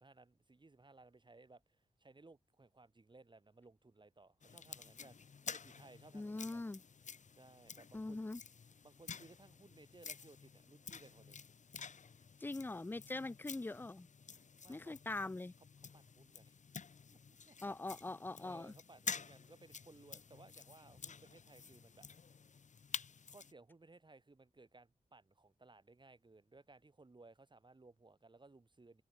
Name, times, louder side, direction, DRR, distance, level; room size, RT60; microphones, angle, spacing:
voice 1, 0.0-6.7 7.4-8.3 8.8-11.4 14.6-15.0 15.8-16.6 17.1-18.1 18.4-22.1 23.3-29.0, right 3 dB, 35° right, 3.8 m, -61 dB
sound 1, 4.4-23.5, left 6 dB, 60° left, 0.8 m, -50 dB
voice 2, 6.1-6.8 7.9-8.4 12.4-14.1 14.7-15.5 17.6-18.7, left 2 dB, 15° left, 0.4 m, -42 dB
open air
wide cardioid pair, 105°, 14 cm